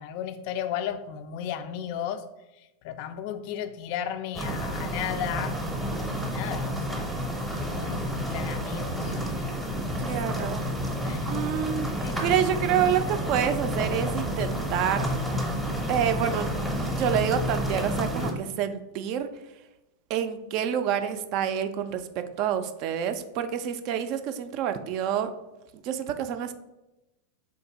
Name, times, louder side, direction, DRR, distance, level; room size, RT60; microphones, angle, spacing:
voice 1, 0.0-2.2 2.6-5.6 6.0-7.2 7.5-9.4 10.0-10.1 11.0-11.3 11.9-12.3, left 9 dB, 45° left, 10 dB, 0.3 m, -35 dB
sound 1, 4.3-18.3, equal, 5° right, 0.7 m, -30 dB
voice 2, 10.0-10.6 11.3-11.9 12.2-15.1 15.9-16.5 16.8-19.3 20.1-25.3 25.7-26.5, right 9 dB, 40° right, 9 dB, 0.3 m, -28 dB
3.8 x 2.7 x 3.8 m, 0.98 s
figure-of-eight pair, 90°, 0 cm